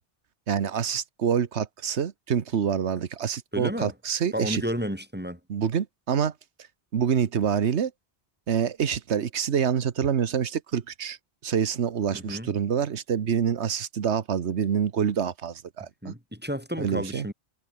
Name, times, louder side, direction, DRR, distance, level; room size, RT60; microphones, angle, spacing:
voice 1, 0.5-4.6 5.5-6.3 6.9-7.9 8.5-11.2 11.4-16.1 16.8-17.3, right 7 dB, 80° right, 1.4 m, -26 dB
voice 2, 3.5-3.9 4.3-5.4 12.1-12.5 16.0-17.3, equal, 10° right, 5.1 m, -31 dB
omnidirectional pair, 1.1 m